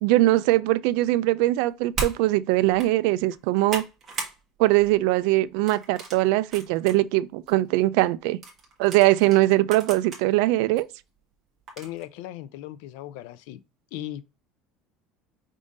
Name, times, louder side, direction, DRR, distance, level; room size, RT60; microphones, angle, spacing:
voice 1, 0.0-3.8 4.6-8.4 8.8-10.9, right 17 dB, 70° right, 0.3 m, -21 dB
sound 1, 1.9-2.2 2.7-2.9 3.3-4.4 4.7-5.0 5.7-7.0 7.5-7.6 8.4-10.2 10.8-10.9 11.7-12.0, right 4 dB, 20° right, 1.2 m, -35 dB
voice 2, 11.8-13.6 13.9-14.2, left 13 dB, 75° left, 0.4 m, -37 dB
5.0 x 3.6 x 2.6 m
cardioid pair, 175°, 0 cm